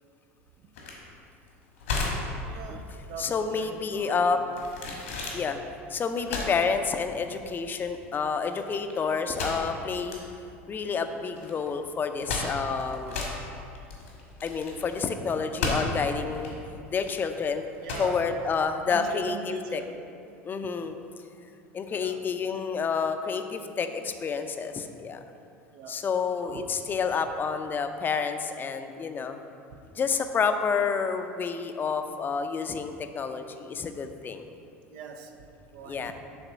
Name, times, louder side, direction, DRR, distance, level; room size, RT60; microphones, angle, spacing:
sound 1, 0.7-19.3, left 3 dB, 90° left, 1.5 m, -35 dB
voice 1, 2.5-4.5 5.2-5.4 17.8-18.2 18.9-19.9 21.9-22.2 25.7-26.0 26.4-26.7 34.9-36.1, right 5 dB, 65° right, 4 dB, 0.7 m, -42 dB
voice 2, 3.2-4.4 5.3-5.6 5.9-10.2 10.7-13.2 14.4-16.5 16.9-17.6 18.0-19.8 20.4-20.9 21.7-25.2 25.9-29.4 30.0-34.4 35.9-36.1, left 5 dB, 30° left, 7 dB, 0.5 m, -29 dB
6.7 x 3.6 x 6.2 m, 2.6 s
hypercardioid pair, 85°, 7 cm